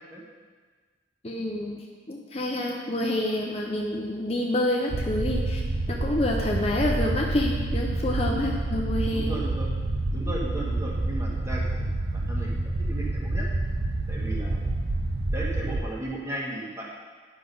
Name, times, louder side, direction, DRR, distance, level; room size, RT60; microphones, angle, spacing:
voice 1, 1.2-5.6 5.9-9.3, left 1 dB, 30° left, 0 dB, 0.7 m, -28 dB
sound 1, 4.9-15.8, right 2 dB, 55° right, 0.8 m, -28 dB
voice 2, 9.1-9.7 10.1-12.5 12.9-13.5 14.1-14.6 15.3-16.9, right 1 dB, 15° right, -4 dB, 1.6 m, -35 dB
9.9 x 6.0 x 5.4 m, 1.5 s
head